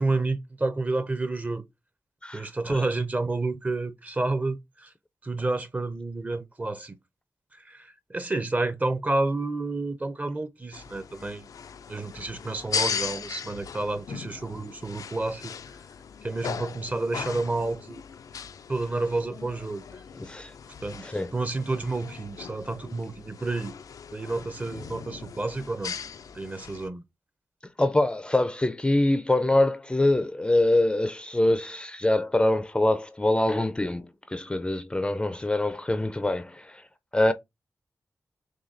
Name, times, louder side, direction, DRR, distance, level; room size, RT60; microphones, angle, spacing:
voice 1, 0.0-1.6 2.3-4.9 5.2-7.0 7.5-11.5 11.9-15.5 16.2-18.0 18.7-20.0 20.8-21.0 21.3-23.7 24.1-25.9 26.3-27.0, right 2 dB, 25° right, 0.6 m, -30 dB
voice 2, 2.2-2.8 20.2-20.5 21.0-21.3 27.8-36.9 37.1-37.3, left 1 dB, 15° left, 0.4 m, -24 dB
sound 1, 10.7-26.9, left 6 dB, 80° left, 0.3 m, -38 dB
6.2 x 2.3 x 2.5 m
wide cardioid pair, 110°, 6 cm